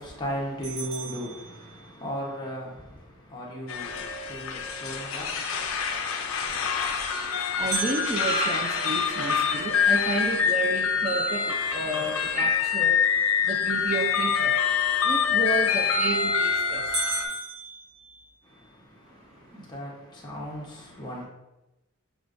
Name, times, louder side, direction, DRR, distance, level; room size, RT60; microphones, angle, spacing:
voice 1, 0.0-6.0 18.4-21.2, equal, 20° left, 0.9 m, -37 dB
sound 1, 0.6-2.2 7.7-9.9 10.4-10.5 11.0-11.1 11.7-12.1 15.7-16.1 16.5-16.6 16.9-18.7, right 3 dB, 85° right, 1.0 m, -36 dB
sound 2, 3.7-17.3, left 6 dB, 65° left, 0.5 m, -26 dB
voice 2, 6.4-14.7 15.0-17.4 19.0-19.6, right 2 dB, 25° right, 0.4 m, -33 dB
6.8 x 2.4 x 2.5 m
head